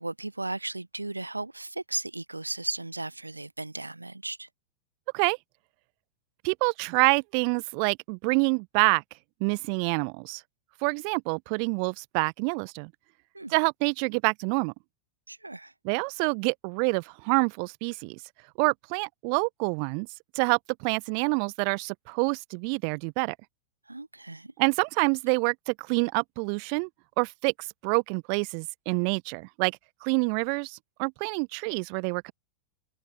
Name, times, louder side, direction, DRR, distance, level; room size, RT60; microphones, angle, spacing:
voice 1, 0.0-4.5 13.3-13.5 15.3-15.7 23.9-24.5, right 2 dB, 85° right, 0.9 m, -35 dB
voice 2, 6.4-9.0 9.4-10.4 10.8-12.9 13.5-14.7 15.8-18.2 18.6-20.1 20.3-23.3 24.6-26.9 27.2-32.3, right 40 dB or more, 45° right, 1.1 m, -27 dB
figure-of-eight pair, 90°, 0 cm